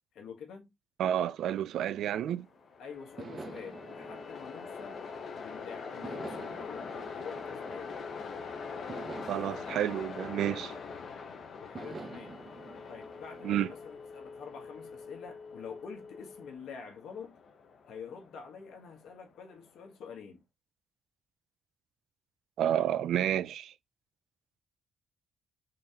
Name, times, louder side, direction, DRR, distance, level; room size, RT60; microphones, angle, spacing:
voice 1, 0.1-0.7 2.8-5.0 5.4-7.9 11.5-12.4 12.9-17.4 17.9-20.4, left 6 dB, 75° left, 1.3 m, -47 dB
voice 2, 1.0-2.5 9.3-10.7 13.4-13.7 22.6-23.7, right 11 dB, 75° right, 0.3 m, -30 dB
sound 1, 1.5-2.6 3.2-5.4 6.0-8.3 8.9-11.2 11.7-13.9, right 3 dB, 30° right, 0.9 m, -48 dB
Train, 2.5-19.7, left 5 dB, 55° left, 1.0 m, -44 dB
sound 2, 2.9-16.6, left 4 dB, 30° left, 0.9 m, -50 dB
3.9 x 3.1 x 2.9 m
cardioid pair, 90°, 0 cm